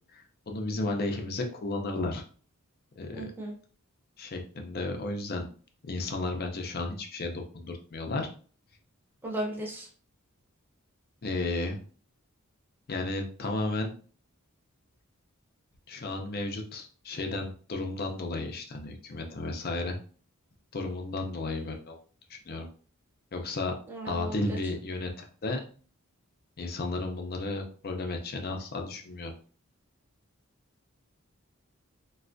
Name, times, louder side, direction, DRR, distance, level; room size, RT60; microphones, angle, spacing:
voice 1, 0.1-2.2 3.0-3.3 4.2-5.5 5.8-8.3 11.2-11.8 12.9-13.9 15.9-20.0 20.7-22.0 22.3-22.7 23.3-23.7 24.1-25.6 26.6-29.3, left 2 dB, 45° left, 3 dB, 0.5 m, -33 dB
voice 2, 3.1-3.5 9.2-9.9 23.9-24.6, right 1 dB, 10° right, -2 dB, 0.7 m, -35 dB
3.2 x 2.3 x 2.5 m, 0.41 s
head